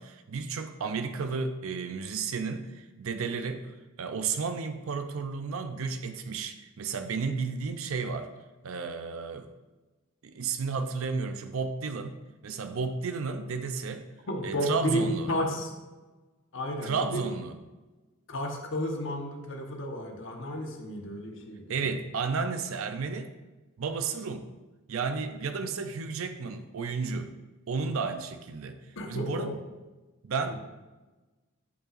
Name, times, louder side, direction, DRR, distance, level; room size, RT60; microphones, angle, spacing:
voice 1, 0.0-3.7 4.0-8.3 8.6-9.5 10.2-12.2 12.4-14.1 14.4-15.3 16.8-17.5 21.7-23.3 23.8-24.5 24.9-27.3 27.7-28.8 29.1-29.5 30.2-30.6, right 5 dB, 85° right, 8 dB, 0.5 m, -32 dB
voice 2, 14.3-15.7 16.5-17.2 18.3-21.9 29.0-29.6 30.5-30.6, equal, 65° left, 2 dB, 1.1 m, -32 dB
11.0 x 5.5 x 2.5 m, 1.2 s
head